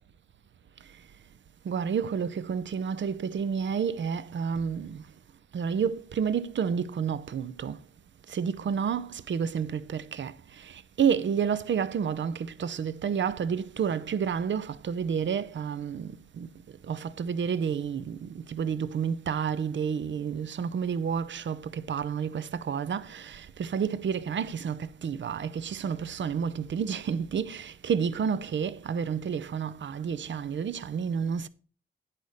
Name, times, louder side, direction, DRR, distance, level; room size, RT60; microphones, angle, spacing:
voice 1, 1.7-5.0 5.5-7.8 8.3-10.3 11.0-16.5 16.9-31.5, right 7 dB, 75° right, 0.5 m, -30 dB
9.8 x 4.1 x 6.3 m
wide cardioid pair, 70°, 20 cm